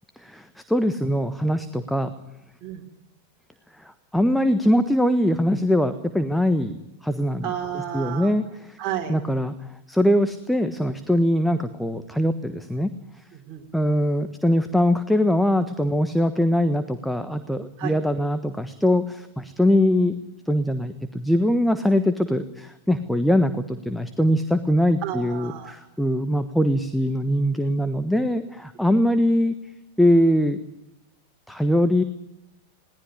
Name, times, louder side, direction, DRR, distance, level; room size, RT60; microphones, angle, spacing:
voice 1, 0.2-2.1 3.8-7.5 7.9-8.8 9.1-12.9 13.7-20.2 20.5-29.5 30.0-30.6 31.5-32.0, equal, ahead, 10 dB, 1.3 m, -22 dB
voice 2, 7.4-8.3 8.8-9.1 13.3-13.6 17.8-17.9 25.0-25.7, right 10 dB, 30° right, 0 dB, 3.6 m, -31 dB
21.5 x 18.0 x 9.9 m, 0.89 s
figure-of-eight pair, 90°, 0 cm